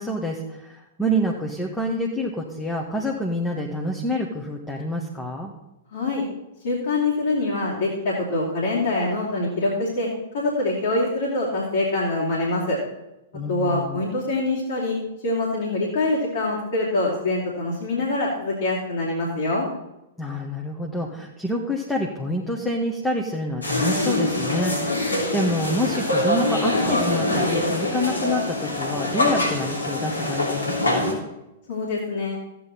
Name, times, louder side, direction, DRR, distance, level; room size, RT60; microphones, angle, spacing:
voice 1, 0.0-5.5 13.3-14.1 20.2-31.2, equal, 10° left, 0 dB, 1.5 m, -27 dB
voice 2, 5.9-6.2 6.6-10.1 10.3-12.8 13.5-15.0 15.2-19.6 31.7-32.4, left 2 dB, 55° left, -5 dB, 3.3 m, -24 dB
sound 1, 23.6-31.1, left 2 dB, 80° left, 3.3 m, -24 dB
14.0 x 9.1 x 4.3 m, 0.94 s
figure-of-eight pair, 105°, 0 cm